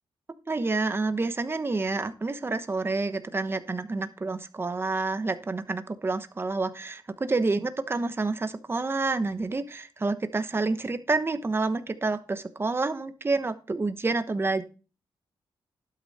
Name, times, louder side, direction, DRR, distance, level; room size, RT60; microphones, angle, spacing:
voice 1, 0.5-14.6, right 3 dB, 25° right, 10 dB, 1.1 m, -28 dB
12.0 x 6.4 x 4.2 m, 0.34 s
cardioid pair, 105°, 9 cm